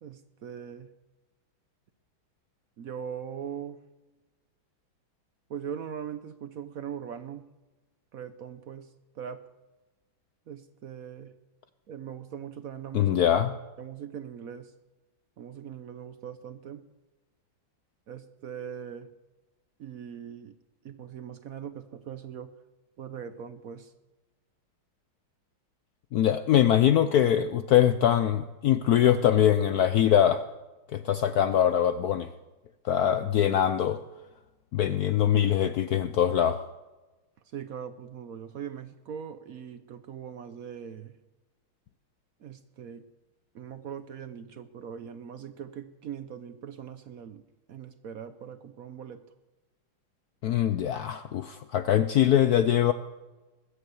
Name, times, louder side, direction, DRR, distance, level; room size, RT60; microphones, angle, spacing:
voice 1, 0.0-0.9 2.8-3.8 5.5-7.5 8.1-8.9 9.1-9.4 10.5-11.3 11.9-13.1 13.8-14.7 15.4-16.8 18.1-19.1 19.8-20.5 20.8-22.5 23.0-23.9 37.5-41.1 42.4-43.0 43.5-47.4 47.7-49.2, right 8 dB, 65° right, 11 dB, 0.9 m, -40 dB
voice 2, 12.9-13.6 26.1-30.4 30.9-32.3 32.8-34.0 34.7-36.6 50.4-52.9, left 10 dB, 75° left, 11 dB, 0.8 m, -23 dB
21.0 x 8.2 x 7.9 m, 1.1 s
omnidirectional pair, 2.3 m